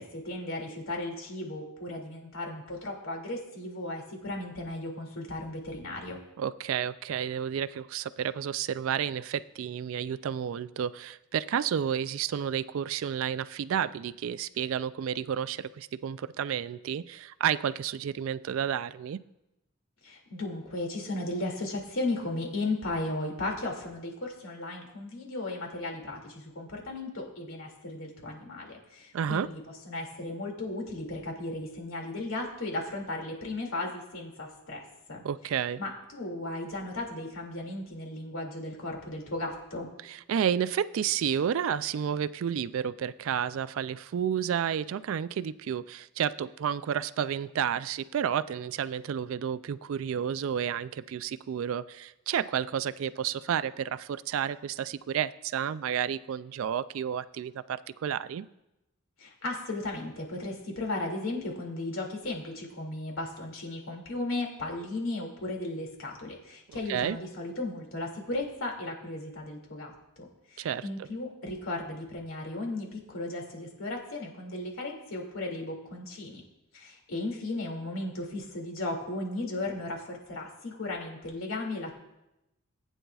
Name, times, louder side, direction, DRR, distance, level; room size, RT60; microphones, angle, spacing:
voice 1, 0.0-6.2 20.0-35.2 35.8-39.9 59.2-76.4 76.7-81.9, left 2 dB, 75° left, 0 dB, 2.4 m, -35 dB
voice 2, 6.4-19.2 29.1-29.5 35.2-35.8 40.0-58.4 66.9-67.2 70.6-71.1, right 8 dB, 70° right, 15 dB, 0.3 m, -31 dB
19.0 x 9.0 x 2.4 m, 0.92 s
head